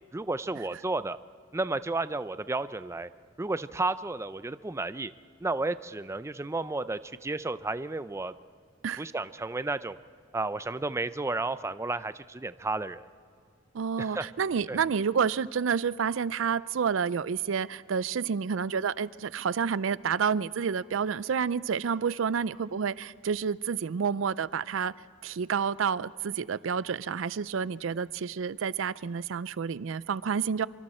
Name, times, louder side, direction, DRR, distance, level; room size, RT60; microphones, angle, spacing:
voice 1, 0.1-1.2 1.5-3.1 3.4-5.1 5.4-8.3 9.0-10.0 10.3-13.0 14.0-14.3 14.7-14.8, right 2 dB, 15° right, 14 dB, 0.4 m, -32 dB
voice 2, 13.7-24.9 25.2-30.7, right 6 dB, 70° right, 19 dB, 0.4 m, -29 dB
26.0 x 24.5 x 4.3 m, 2.2 s
head